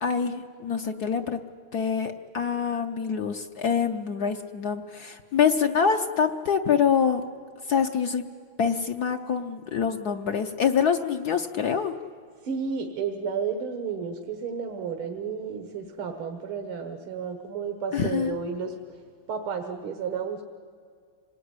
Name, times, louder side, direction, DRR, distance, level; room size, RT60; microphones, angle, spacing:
voice 1, 0.0-1.4 1.7-7.2 7.7-8.2 8.6-11.9 17.9-18.4, left 7 dB, 60° left, 5 dB, 1.2 m, -25 dB
voice 2, 12.4-18.7 19.3-20.4, right 6 dB, 85° right, 5 dB, 2.2 m, -32 dB
27.0 x 19.5 x 9.7 m, 2.2 s
omnidirectional pair, 2.3 m